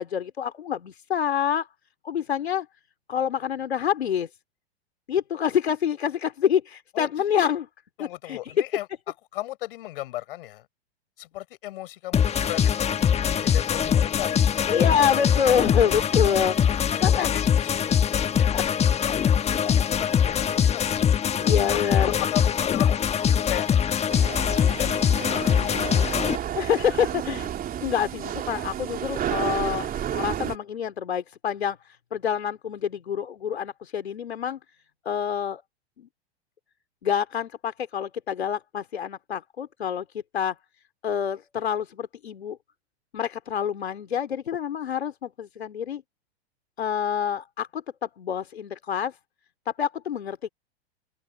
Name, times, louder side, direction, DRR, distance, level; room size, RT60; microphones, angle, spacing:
voice 1, 0.0-1.7 2.0-2.7 3.1-4.3 5.1-7.7 8.0-8.5 14.7-16.6 17.0-17.3 18.5-18.6 21.4-22.2 26.5-27.5 27.8-34.6 35.0-35.6 36.0-36.1 37.0-40.5 41.0-42.6 43.1-46.0 46.8-49.1 49.8-50.5, left 8 dB, 75° left, 3.2 m, -27 dB
voice 2, 6.9-7.4 8.0-10.7 11.2-13.0 13.4-14.6 16.6-18.7 19.4-21.0 21.7-21.8 22.2-23.7 24.6-25.7 26.0-26.4, left 16 dB, 60° left, 5.9 m, -37 dB
sound 1, 12.1-26.4, left 8 dB, 20° left, 1.4 m, -22 dB
sound 2, 24.1-30.6, right 10 dB, 25° right, 3.3 m, -31 dB
figure-of-eight pair, 100°, 32 cm